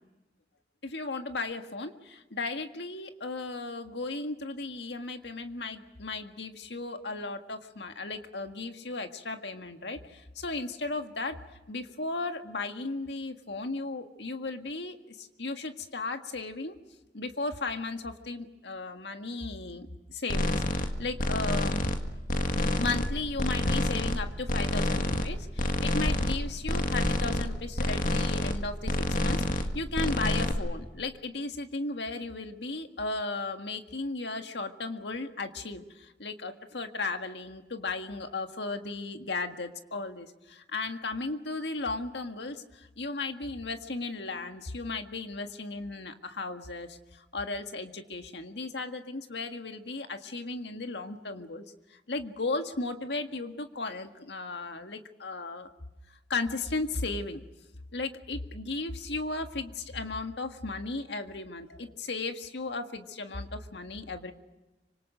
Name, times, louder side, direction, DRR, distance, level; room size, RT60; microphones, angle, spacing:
voice 1, 0.8-11.4 11.7-16.8 17.1-21.8 22.8-51.6 51.9-55.7 56.3-57.4 57.9-64.3, left 3 dB, 75° left, 6 dB, 1.8 m, -35 dB
sound 1, 20.3-20.9 21.2-22.0 22.3-23.1 23.4-24.2 24.5-25.3 25.6-26.4 26.7-27.4 27.8-28.6 28.8-29.7 29.9-30.5, left 1 dB, 50° left, 2.0 m, -28 dB
26.5 x 25.5 x 6.4 m, 1.1 s
head